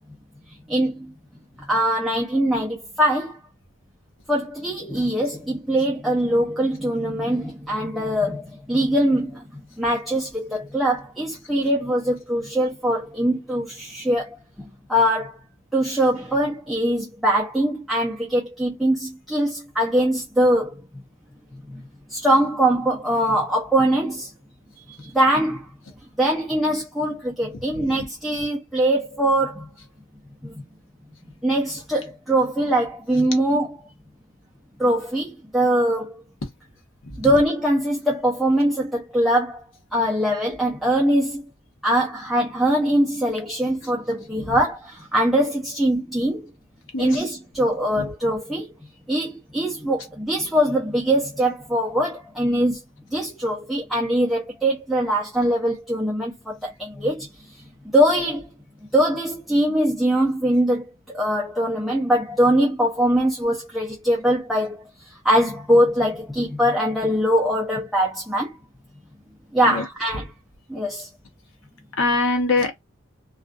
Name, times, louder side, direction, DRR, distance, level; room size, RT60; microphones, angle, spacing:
voice 1, 0.7-1.1 1.7-3.4 4.3-15.4 15.7-20.7 21.7-21.8 22.1-24.3 24.9-25.7 26.2-29.7 30.4-30.5 31.4-33.8 34.8-36.2 37.2-39.6 39.9-41.4 41.8-46.4 47.0-48.7 49.1-52.8 53.1-57.3 57.9-58.5 58.9-68.5 69.5-70.3 70.7-71.1, right 1 dB, ahead, 0.5 m, -22 dB
voice 2, 46.9-47.2 48.0-48.1 69.7-69.8 72.0-72.7, left 3 dB, 60° left, 0.9 m, -23 dB
2.4 x 2.3 x 2.3 m
head